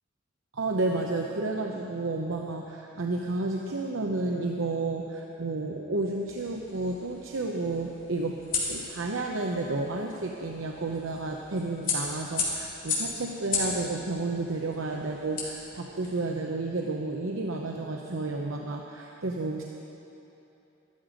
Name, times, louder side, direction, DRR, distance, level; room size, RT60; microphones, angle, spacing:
voice 1, 0.5-8.4 8.7-19.6, right 2 dB, 85° right, 1 dB, 0.8 m, -31 dB
sound 1, 6.3-16.2, left 4 dB, 50° left, 3.2 m, -36 dB
13.5 x 12.5 x 5.1 m, 2.9 s
head